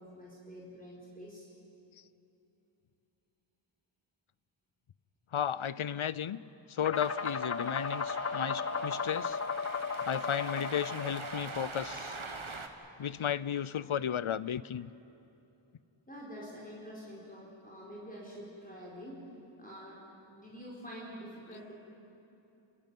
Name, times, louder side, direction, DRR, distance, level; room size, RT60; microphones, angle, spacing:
voice 1, 0.0-1.5 16.1-19.2 19.6-20.0 20.3-21.7, equal, 15° left, -5 dB, 4.7 m, -47 dB
voice 2, 5.3-6.4 6.7-9.4 10.0-12.2 13.0-14.9, left 9 dB, 75° left, 18 dB, 0.6 m, -34 dB
sound 1, 6.8-12.2, left 5 dB, 30° left, 0.4 m, -36 dB
Cheering, 6.9-12.7, right 4 dB, 75° right, 1.6 m, -43 dB
28.5 x 14.5 x 9.3 m, 2.9 s
wide cardioid pair, 50°, 49 cm